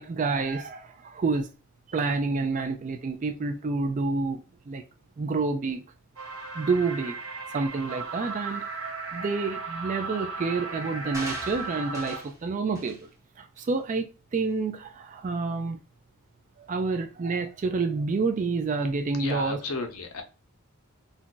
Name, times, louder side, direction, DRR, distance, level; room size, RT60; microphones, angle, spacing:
voice 1, 0.0-1.5 1.9-4.8 5.2-5.9 6.5-7.2 7.5-13.1 13.4-15.8 16.6-19.6, right 4 dB, 35° right, 0.3 m, -29 dB
sound 1, 6.2-12.2, right 4 dB, 75° right, 0.7 m, -36 dB
sound 2, 11.1-12.4 12.8-13.0 13.6-13.7, right 1 dB, 15° right, 0.7 m, -40 dB
voice 2, 19.1-20.2, left 4 dB, 80° left, 0.7 m, -34 dB
2.5 x 2.2 x 3.8 m
head